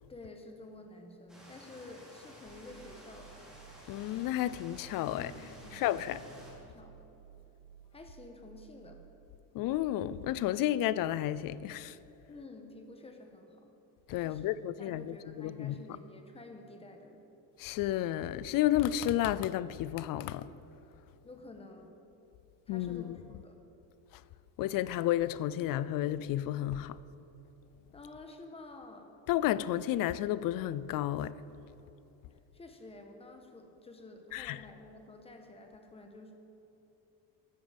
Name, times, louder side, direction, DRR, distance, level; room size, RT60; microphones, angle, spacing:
voice 1, 0.1-3.4 5.1-5.9 6.6-7.1 7.9-9.0 12.3-13.7 14.2-14.5 14.8-17.2 21.2-21.9 22.7-23.6 27.9-29.1 32.5-36.3, left 2 dB, 15° left, 1.3 m, -50 dB
sound 1, 1.3-6.5, equal, ahead, 3.6 m, -53 dB
sound 2, 2.4-9.3, right 10 dB, 75° right, 1.8 m, -57 dB
voice 2, 3.9-5.3 5.7-6.2 9.5-12.0 14.1-15.8 17.6-20.5 22.7-23.2 24.1-24.2 24.6-27.0 29.3-31.4 34.3-34.6, left 13 dB, 55° left, 0.5 m, -32 dB
15.0 x 13.0 x 5.2 m
cardioid pair, 170°, 40 cm